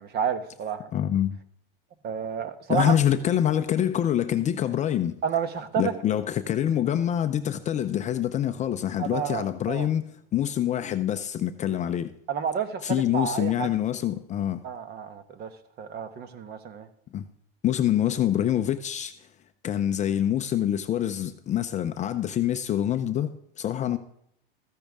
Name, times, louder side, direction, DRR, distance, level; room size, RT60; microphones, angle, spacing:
voice 1, 0.0-0.9 2.0-2.9 5.2-5.9 9.0-9.9 12.3-13.7 14.6-15.5 15.8-16.9, right 7 dB, 35° right, 1.1 m, -30 dB
voice 2, 0.9-1.4 2.7-5.2 5.8-10.0 10.3-12.1 12.8-14.6 17.1-17.2 17.6-19.1 19.6-23.3 23.6-24.0, left 10 dB, 25° left, 0.6 m, -25 dB
14.5 x 10.0 x 3.6 m
supercardioid pair, 135°, 29 cm